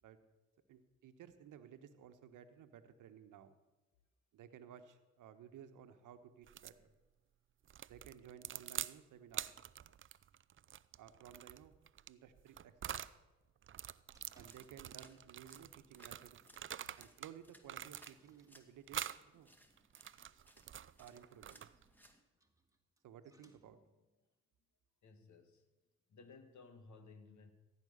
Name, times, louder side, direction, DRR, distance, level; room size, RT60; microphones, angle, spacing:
voice 1, 0.7-3.5 4.3-6.7 7.8-9.5 11.0-11.8 12.1-13.0 14.3-16.4 17.0-19.5 21.0-21.6 23.0-23.8, right 9 dB, 65° right, 9 dB, 1.3 m, -57 dB
sound 1, 6.5-6.8 7.7-9.0 9.3-13.2 13.6-17.3 17.6-18.4 18.9-19.2 19.8-21.9, right 10 dB, 40° right, 0.5 m, -46 dB
sound 2, 14.1-15.1 15.4-15.8 16.1-16.2 16.6-16.7 17.3-19.3 20.8-24.2, right 1 dB, 10° right, 1.9 m, -73 dB
sound 3, 14.2-22.2, equal, 5° left, 2.2 m, -67 dB
voice 2, 25.0-25.7 26.1-27.5, left 4 dB, 60° left, 8 dB, 1.9 m, -58 dB
15.5 x 9.1 x 6.6 m, 1.1 s
hypercardioid pair, 50°, 33 cm